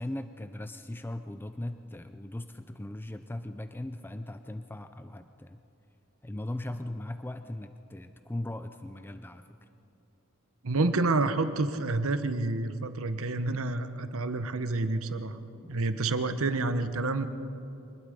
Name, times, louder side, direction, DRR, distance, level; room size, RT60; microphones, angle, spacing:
voice 1, 0.0-5.6 6.2-9.6 15.6-16.1, left 1 dB, 10° left, 9 dB, 0.4 m, -39 dB
voice 2, 10.6-15.4 15.7-17.3, right 3 dB, 65° right, 10 dB, 1.0 m, -28 dB
25.0 x 20.0 x 5.1 m, 2.9 s
head